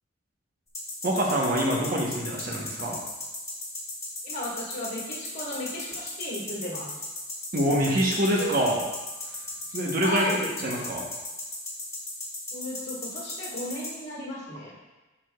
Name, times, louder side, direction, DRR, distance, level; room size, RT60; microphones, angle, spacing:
sound 1, 0.7-13.9, left 2 dB, 15° left, 1.5 m, -35 dB
voice 1, 1.0-3.0 7.5-8.8 9.7-11.1, equal, 45° right, -2 dB, 0.9 m, -25 dB
voice 2, 4.2-7.0 10.0-10.4 12.5-14.7, left 1 dB, 60° left, -7 dB, 1.6 m, -35 dB
sound 2, 8.4-10.4, right 5 dB, 80° right, 1.3 m, -41 dB
11.0 x 4.8 x 2.3 m, 1.1 s
head